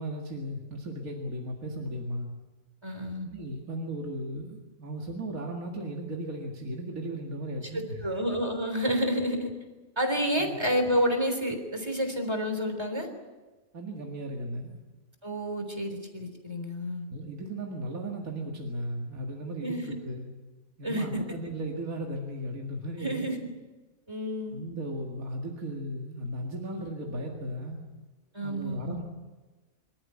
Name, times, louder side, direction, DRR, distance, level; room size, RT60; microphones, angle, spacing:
voice 1, 0.0-2.3 3.2-8.1 10.4-10.6 13.7-14.8 17.1-20.3 20.8-23.3 24.5-27.8 28.4-29.0, right 1 dB, 75° right, 0 dB, 2.5 m, -36 dB
voice 2, 2.8-3.3 7.7-9.5 10.0-13.1 15.2-17.1 19.6-20.0 20.8-21.4 23.0-23.5 24.1-24.6 28.3-29.0, equal, 20° right, 5 dB, 3.6 m, -29 dB
26.0 x 13.5 x 9.8 m, 1.2 s
omnidirectional pair, 1.5 m